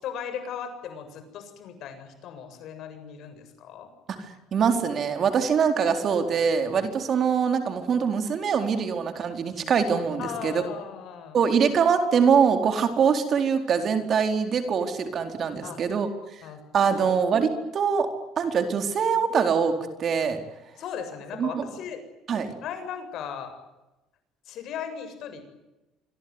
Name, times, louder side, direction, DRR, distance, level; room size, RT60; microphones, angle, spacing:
voice 1, 0.0-3.9 10.2-11.4 15.6-15.8 16.4-16.6 16.9-17.1 20.8-22.0 22.6-23.5 24.5-25.4, left 8 dB, 60° left, 8 dB, 7.6 m, -37 dB
voice 2, 4.5-10.6 11.3-16.1 16.7-18.1 18.4-19.7 20.0-20.4 21.4-21.6 22.3-22.5, right 6 dB, 45° right, 6 dB, 4.3 m, -23 dB
26.0 x 23.0 x 9.8 m, 0.99 s
cardioid pair, 115°, 0 cm